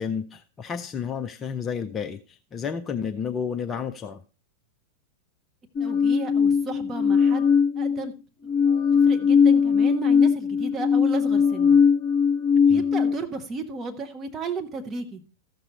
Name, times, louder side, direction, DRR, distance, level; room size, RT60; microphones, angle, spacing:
voice 1, 0.0-4.2 12.7-12.9, left 6 dB, 20° left, 8 dB, 0.5 m, -31 dB
sound 1, 5.8-8.1 8.5-13.1, left 6 dB, 40° left, 1.1 m, -20 dB
voice 2, 5.8-7.5 7.8-8.1 8.9-11.8 12.7-15.2, right 3 dB, 25° right, 4 dB, 1.4 m, -34 dB
14.0 x 6.7 x 4.2 m, 0.36 s
figure-of-eight pair, 90°, 0 cm